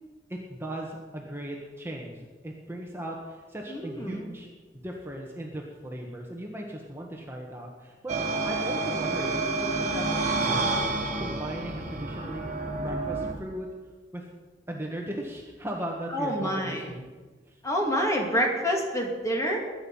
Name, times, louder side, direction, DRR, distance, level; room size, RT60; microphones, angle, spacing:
voice 1, 0.3-4.5 4.8-8.2 8.4-10.8 11.2-12.5 12.8-13.7 14.1-14.3 14.7-17.1 17.5-17.6, right 1 dB, 15° right, -1 dB, 1.5 m, -37 dB
voice 2, 3.7-4.3 16.1-16.9 17.6-19.6, equal, 20° left, 0 dB, 2.7 m, -27 dB
sound 1, 8.1-13.3, right 3 dB, 40° right, 1.9 m, -29 dB
21.5 x 9.1 x 5.7 m, 1.3 s
head